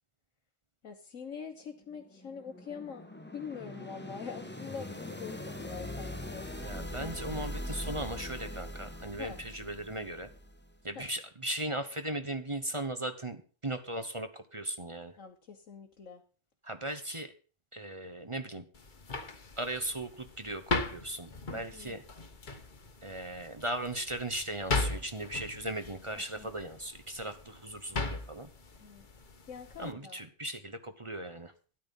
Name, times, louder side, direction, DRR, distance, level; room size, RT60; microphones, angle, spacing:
voice 1, 0.8-3.0 3.3-6.5 9.2-9.4 10.9-11.1 15.2-16.2 21.5-22.0 26.1-26.5 28.8-29.0 29.5-30.2, left 6 dB, 85° left, 2 dB, 1.6 m, -44 dB
sound 1, 1.9-10.8, left 1 dB, 10° left, 1.3 m, -42 dB
voice 2, 6.6-10.3 10.8-15.1 16.6-17.3 17.7-18.7 19.6-22.0 23.0-28.5 29.8-31.5, right 1 dB, 25° right, 9 dB, 1.0 m, -38 dB
sound 2, 18.7-29.9, left 3 dB, 40° left, 1.3 m, -38 dB
13.0 x 10.0 x 5.5 m, 0.39 s
omnidirectional pair, 1.3 m